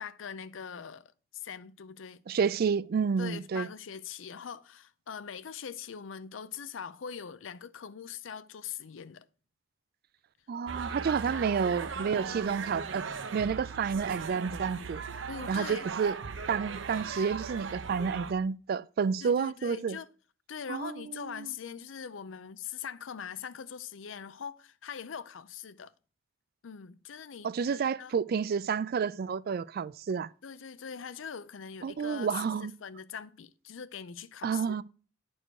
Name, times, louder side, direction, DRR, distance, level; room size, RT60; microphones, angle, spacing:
voice 1, 0.0-2.2 3.2-9.3 11.0-11.1 15.3-15.9 19.2-20.1 20.5-25.9 26.6-28.2 30.4-34.8, left 7 dB, 80° left, 0.5 m, -42 dB
voice 2, 2.3-3.7 10.5-13.0 13.3-15.0 15.5-16.2 16.5-20.0 20.7-21.5 27.4-30.3 31.8-32.7 34.4-34.8, right 6 dB, 50° right, 0.3 m, -30 dB
sound 1, 10.7-18.3, right 5 dB, 70° right, 0.7 m, -38 dB
9.9 x 4.5 x 4.7 m
head